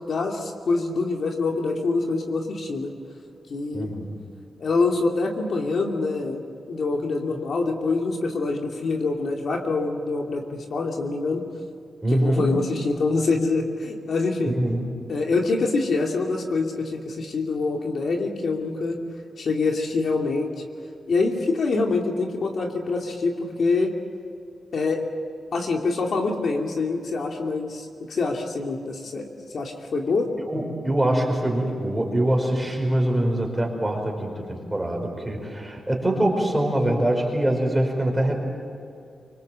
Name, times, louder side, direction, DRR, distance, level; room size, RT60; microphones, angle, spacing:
voice 1, 0.1-2.9 3.5-3.9 4.6-6.4 6.7-11.4 12.1-14.6 15.1-19.0 19.4-20.5 21.1-23.9 24.7-25.0 25.5-30.3, left 3 dB, 60° left, 1 dB, 2.5 m, -25 dB
voice 2, 3.7-4.1 12.0-12.5 14.5-14.9 30.5-38.4, right 1 dB, 10° right, 1 dB, 5.2 m, -24 dB
25.5 x 25.0 x 7.6 m, 2.4 s
wide cardioid pair, 150°, 0 cm